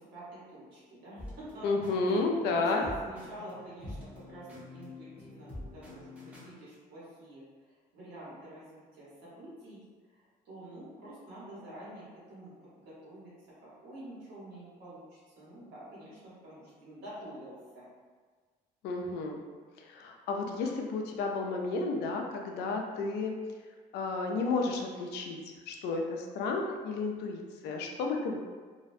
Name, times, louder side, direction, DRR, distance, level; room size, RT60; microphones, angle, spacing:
voice 1, 0.0-1.8 2.0-2.2 2.4-9.8 10.1-10.2 10.4-13.3 13.8-17.9, right 1 dB, 75° right, -9 dB, 1.2 m, -48 dB
sound 1, 1.2-6.5, left 2 dB, 5° right, 0.6 m, -47 dB
voice 2, 1.6-2.8 18.8-19.4 19.8-23.3 23.9-25.4 25.7-28.4, left 3 dB, 75° left, 2 dB, 0.4 m, -32 dB
2.5 x 2.1 x 2.5 m, 1.5 s
cardioid pair, 110°, 17 cm